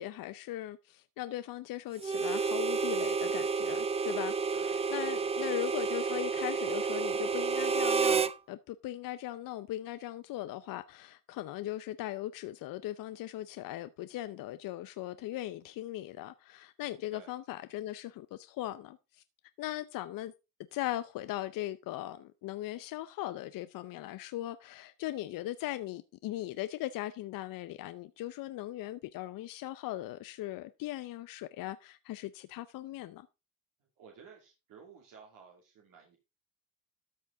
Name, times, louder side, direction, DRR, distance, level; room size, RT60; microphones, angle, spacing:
voice 1, 0.0-4.4 4.9-19.2 19.6-20.3 20.7-33.3, left 14 dB, 65° left, 0.6 m, -39 dB
Harmonica, 2.0-8.3, right 5 dB, 20° right, 0.4 m, -30 dB
voice 2, 4.5-5.5 17.1-17.3 34.0-36.2, right 5 dB, 65° right, 2.7 m, -54 dB
13.0 x 5.9 x 3.8 m
cardioid pair, 120°, 35 cm